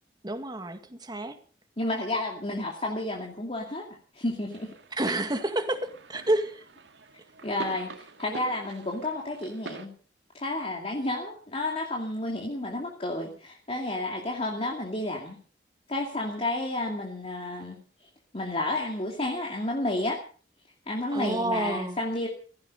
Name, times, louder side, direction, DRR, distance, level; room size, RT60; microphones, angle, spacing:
voice 1, 0.2-1.4 4.9-6.6 21.1-22.0, right 1 dB, 25° right, 7 dB, 2.0 m, -29 dB
voice 2, 1.8-3.9 4.1-4.7 7.4-9.9 10.3-15.4 15.9-17.8 18.3-20.2 20.9-22.3, left 2 dB, 35° left, 0 dB, 2.6 m, -31 dB
sound 1, 4.5-9.9, right 2 dB, 80° right, 2.1 m, -45 dB
16.5 x 15.0 x 5.4 m, 0.42 s
head